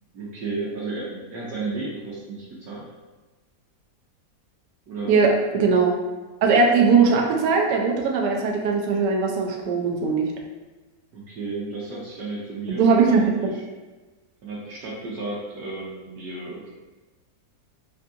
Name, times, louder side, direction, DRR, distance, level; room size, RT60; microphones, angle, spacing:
voice 1, 0.1-2.9 4.9-5.1 11.1-13.3 14.4-16.7, right 3 dB, 70° right, -5 dB, 1.0 m, -33 dB
voice 2, 5.1-6.0 6.4-10.3 12.7-13.5, right 4 dB, 90° right, 1 dB, 1.2 m, -20 dB
3.5 x 2.6 x 2.4 m, 1.2 s
omnidirectional pair, 1.7 m